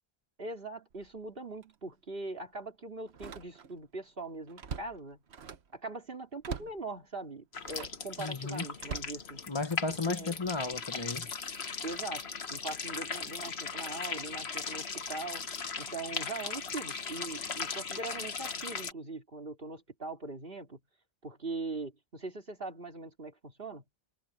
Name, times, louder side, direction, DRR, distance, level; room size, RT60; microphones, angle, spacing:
voice 1, 0.4-5.2 5.7-9.4 10.1-10.4 11.8-15.4 15.8-20.8 21.2-23.8, right 3 dB, 60° right, 3.2 m, -41 dB
Slam, 0.9-1.2 1.6-1.7 3.1-3.9 4.2-5.8 6.4-6.9 7.6-8.1 8.8-9.9 10.4-10.8, right 6 dB, 90° right, 1.4 m, -43 dB
sound 1, 7.5-18.9, left 5 dB, 85° left, 1.6 m, -38 dB
voice 2, 8.2-8.6 9.5-11.3, left 3 dB, 25° left, 1.1 m, -34 dB
omnidirectional pair, 1.0 m